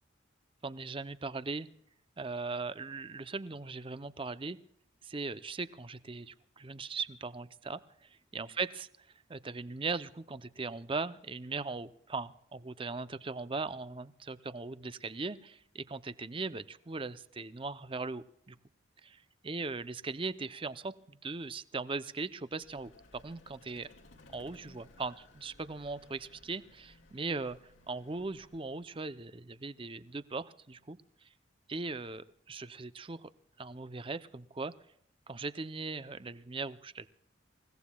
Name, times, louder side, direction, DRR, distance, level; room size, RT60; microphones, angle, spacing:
voice 1, 0.6-1.7 2.2-4.6 5.0-18.6 19.0-19.2 19.4-22.9 23.2-23.9 24.3-27.6 27.9-31.3 31.7-33.3 33.6-34.7 35.3-37.1, right 3 dB, 25° right, 14 dB, 0.6 m, -39 dB
Vehicle, 22.6-29.0, left 2 dB, 80° left, 2.2 m, -59 dB
28.5 x 17.0 x 2.3 m, 0.70 s
head